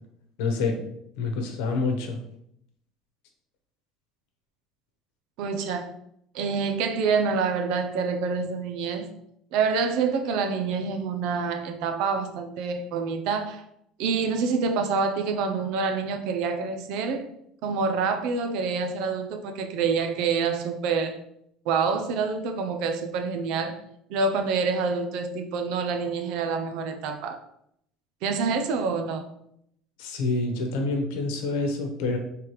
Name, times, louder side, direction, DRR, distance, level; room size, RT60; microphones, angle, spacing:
voice 1, 0.4-0.8 1.2-2.2 30.0-32.2, left 3 dB, 80° left, 1.0 m, -27 dB
voice 2, 5.4-5.9 6.3-9.1 9.5-13.7 14.0-17.3 17.6-21.2 21.7-23.8 24.1-27.4 28.2-29.2, right 5 dB, 65° right, 0.6 m, -27 dB
3.4 x 3.2 x 4.6 m
cardioid pair, 135°, 0 cm